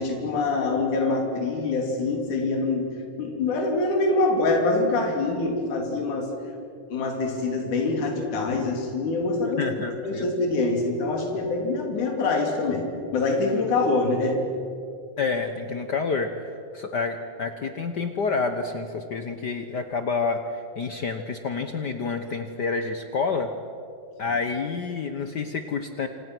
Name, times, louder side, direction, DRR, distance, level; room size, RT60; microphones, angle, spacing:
voice 1, 0.0-2.9 3.2-6.3 6.9-9.8 10.0-14.4 24.3-24.4, left 3 dB, 75° left, 2 dB, 4.4 m, -25 dB
voice 2, 9.6-10.3 15.2-23.5 24.2-26.1, left 4 dB, 90° left, 7 dB, 0.9 m, -28 dB
28.0 x 27.5 x 6.1 m, 2.6 s
omnidirectional pair, 3.6 m